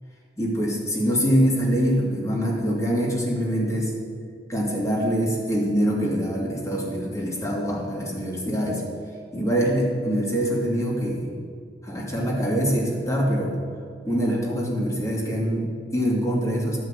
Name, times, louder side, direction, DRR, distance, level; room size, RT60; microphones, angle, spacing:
voice 1, 0.4-3.9 4.5-8.8 9.3-11.3 11.8-13.5 14.0-16.8, equal, 20° left, -3 dB, 2.4 m, -24 dB
12.5 x 5.7 x 8.9 m, 2.3 s
head